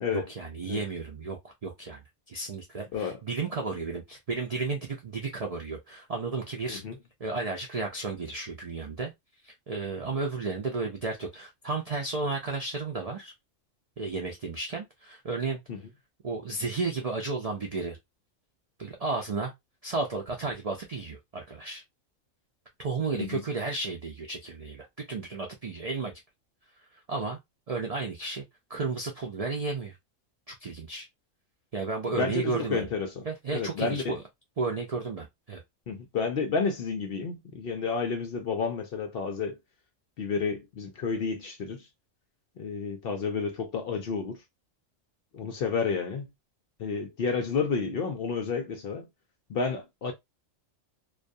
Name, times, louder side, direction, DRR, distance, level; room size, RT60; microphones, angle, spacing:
voice 1, 0.1-2.0 2.3-6.8 7.2-9.1 9.4-13.3 14.0-15.6 16.2-18.0 18.8-19.5 19.8-21.8 22.8-26.1 27.1-27.4 27.7-28.4 28.7-30.0 30.5-31.1 31.7-32.9 33.2-34.2 34.6-35.6, right 3 dB, 80° right, 0.3 m, -33 dB
voice 2, 32.1-33.2 33.5-34.2 35.9-39.6 40.2-41.9 42.6-44.4 45.3-46.3 46.8-49.1 49.5-50.1, left 5 dB, 65° left, 0.6 m, -31 dB
2.3 x 2.3 x 2.5 m
omnidirectional pair, 1.3 m